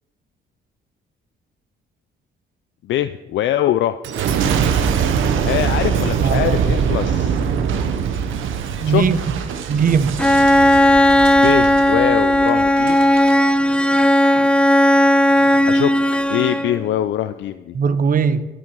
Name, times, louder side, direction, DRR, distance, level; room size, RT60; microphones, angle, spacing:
voice 1, 2.8-4.0 5.4-7.4 8.8-9.0 11.3-13.1 15.6-15.9 16.3-17.8, left 12 dB, 70° left, 11 dB, 0.4 m, -22 dB
Boom, 4.0-13.4 13.9-14.4, right 7 dB, 80° right, 0.9 m, -22 dB
voice 2, 6.2-6.8 8.8-9.2 9.7-10.2 17.7-18.5, right 6 dB, 45° right, 13 dB, 0.8 m, -19 dB
Bowed string instrument, 10.2-16.9, left 1 dB, 5° left, 0.4 m, -15 dB
18.0 x 6.1 x 4.7 m, 1.1 s
cardioid pair, 90°, 20 cm